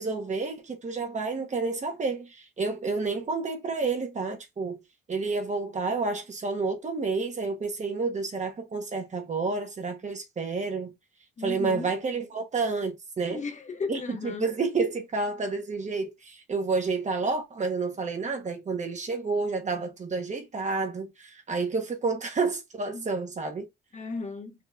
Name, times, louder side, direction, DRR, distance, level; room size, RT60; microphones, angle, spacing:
voice 1, 0.0-4.8 5.1-10.9 11.4-13.4 13.9-23.7, right 4 dB, 35° right, 1.3 m, -30 dB
voice 2, 11.4-11.9 13.3-14.5 22.9-23.0 23.9-24.5, left 4 dB, 35° left, 1.2 m, -35 dB
4.2 x 2.9 x 3.5 m
cardioid pair, 90°, 20 cm